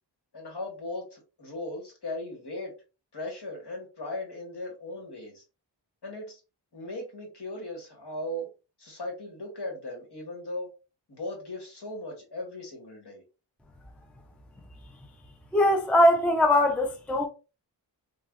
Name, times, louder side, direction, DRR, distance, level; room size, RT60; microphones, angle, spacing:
voice 1, 0.3-2.7 3.1-5.4 6.0-6.4 6.7-8.5 8.8-10.7 11.1-13.2, left 1 dB, 60° left, 1.3 m, -37 dB
voice 2, 15.5-17.3, left 1 dB, 5° left, 0.4 m, -21 dB
3.2 x 2.3 x 2.3 m
wide cardioid pair, 85°, 45 cm